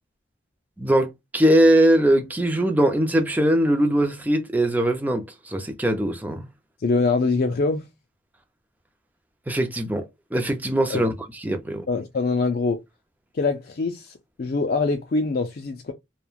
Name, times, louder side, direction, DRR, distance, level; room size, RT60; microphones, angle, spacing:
voice 1, 0.8-6.4 9.5-10.0 10.3-11.1 11.4-11.8, right 1 dB, 10° right, 0.4 m, -21 dB
voice 2, 6.8-7.8 10.9-11.1 11.9-12.8 13.3-15.9, left 3 dB, 50° left, 0.4 m, -24 dB
3.1 x 2.1 x 2.3 m
head